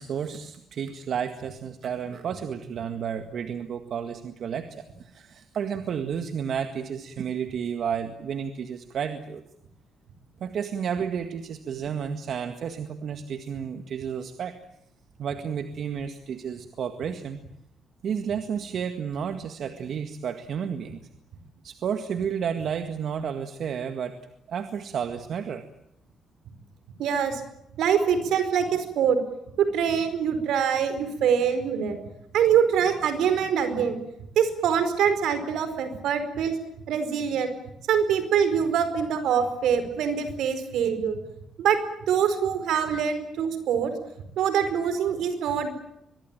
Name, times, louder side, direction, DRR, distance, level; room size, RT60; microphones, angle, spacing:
voice 1, 0.0-9.4 10.4-14.5 15.2-17.4 18.0-21.0 21.6-24.2 24.5-25.6, right 7 dB, 65° right, 8 dB, 1.8 m, -31 dB
voice 2, 27.0-27.4 27.8-29.2 29.6-32.0 32.3-34.0 34.3-36.5 36.9-37.5 37.9-41.2 41.6-41.8 42.1-43.9 44.4-45.7, right 7 dB, 80° right, 10 dB, 4.7 m, -24 dB
24.0 x 22.0 x 9.0 m, 0.81 s
cardioid pair, 90°, 0 cm